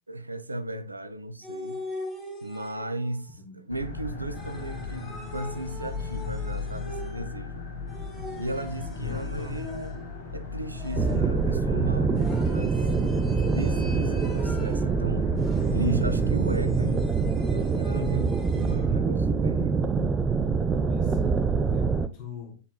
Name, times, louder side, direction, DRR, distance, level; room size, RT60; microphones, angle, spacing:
voice 1, 0.1-1.8 2.4-7.7 8.4-9.9 10.3-12.9 13.5-15.3 15.7-20.1, right 1 dB, 85° right, 0.5 m, -35 dB
sound 1, 1.4-3.1 4.3-7.4 7.9-10.2 10.8-11.5 12.1-14.9 15.4-18.9, left 1 dB, 5° left, 2.4 m, -42 dB
sound 2, 3.7-16.3, left 4 dB, 80° left, 2.3 m, -36 dB
voice 2, 9.0-9.6 15.7-16.0 20.7-22.6, left 6 dB, 50° left, 1.7 m, -42 dB
sound 3, 11.0-22.1, right 5 dB, 20° right, 0.5 m, -25 dB
10.0 x 4.4 x 2.2 m
figure-of-eight pair, 90°, 0 cm